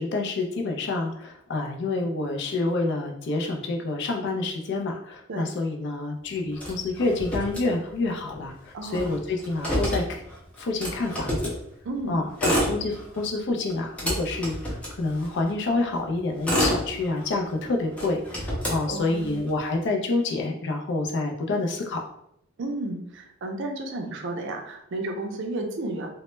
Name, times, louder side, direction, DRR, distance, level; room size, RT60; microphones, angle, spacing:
voice 1, 0.0-10.2 10.6-11.5 12.1-22.1, left 2 dB, 60° left, 2 dB, 0.4 m, -28 dB
Motor vehicle (road), 6.6-8.2 8.5-8.6 8.8-11.6 12.2-13.3 13.7-15.5 16.1-17.5 17.9-19.5, equal, 5° left, 0.5 m, -29 dB
voice 2, 8.7-9.1 11.8-12.2 18.9-19.4 22.6-26.1, right 2 dB, 65° right, 4 dB, 0.4 m, -32 dB
2.0 x 2.0 x 3.0 m, 0.75 s
head